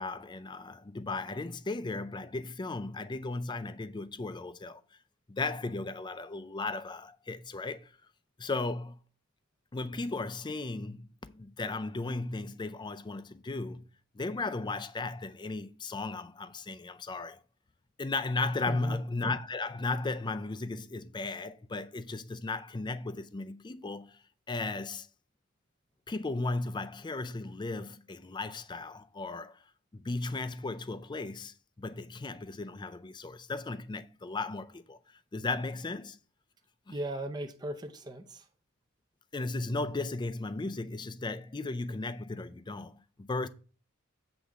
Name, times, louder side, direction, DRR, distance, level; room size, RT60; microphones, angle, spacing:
voice 1, 0.0-4.8 5.3-7.9 8.4-9.0 9.7-13.9 14.1-17.4 18.0-24.2 24.5-25.1 26.1-29.6 29.9-35.0 35.3-36.2 36.9-37.0 39.3-43.5, left 3 dB, 20° left, 0.4 m, -36 dB
voice 2, 18.7-19.0 36.9-38.5, right 1 dB, 20° right, 0.6 m, -38 dB
8.0 x 3.5 x 6.3 m
head